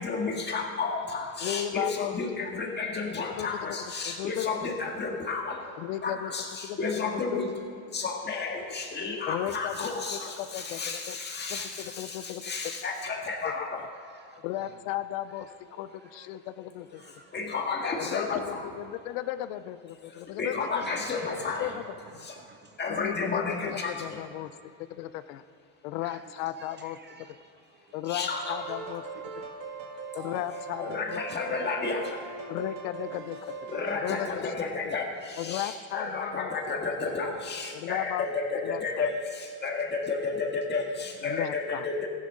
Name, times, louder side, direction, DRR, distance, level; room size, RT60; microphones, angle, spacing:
voice 1, 0.0-5.8 6.0-7.5 7.9-13.9 17.0-18.7 20.0-21.7 22.2-22.4 22.8-24.2 28.1-28.6 30.8-32.5 33.7-42.1, left 4 dB, 25° left, 1 dB, 1.7 m, -32 dB
voice 2, 1.4-2.1 2.5-2.6 3.4-3.7 4.0-4.5 5.8-6.3 6.6-6.8 7.1-7.4 9.3-11.2 11.5-12.6 14.4-17.0 18.0-20.8 21.3-21.8 22.1-22.3 22.9-24.5 24.9-25.4 25.8-27.0 27.9-29.0 30.1-31.2 32.5-33.5 34.0-34.5 34.8-34.9 35.4-36.5 37.7-38.3 38.6-39.1 41.2-41.9, left 13 dB, 85° left, 13 dB, 0.6 m, -35 dB
voice 3, 14.1-14.7 15.9-16.3 16.9-17.4 20.6-21.8 22.2-22.8 26.0-26.2 26.6-27.5 27.9-28.0 29.4-29.5, right 5 dB, 25° right, 7 dB, 0.5 m, -52 dB
sound 1, 28.3-34.2, right 4 dB, 50° right, 1.8 m, -40 dB
15.0 x 11.0 x 3.8 m, 2.4 s
cardioid pair, 135°, 42 cm